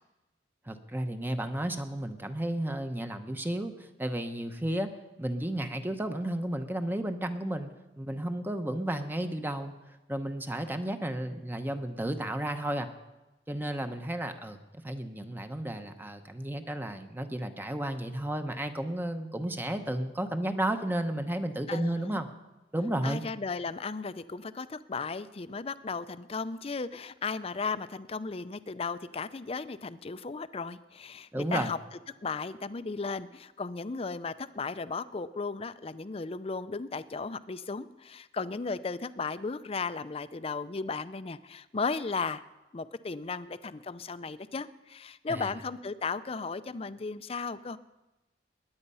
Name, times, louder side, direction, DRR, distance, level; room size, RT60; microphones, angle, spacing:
voice 1, 0.7-4.9 5.2-7.7 8.0-9.7 10.1-12.9 13.5-14.6 14.8-22.3 22.7-23.2 31.3-31.7 45.3-45.5, right 1 dB, 10° right, 7 dB, 0.8 m, -33 dB
voice 2, 21.7-22.2 23.0-31.8 32.2-42.4 42.7-47.8, left 4 dB, 35° left, 14 dB, 0.5 m, -35 dB
21.0 x 9.9 x 5.6 m, 1.0 s
head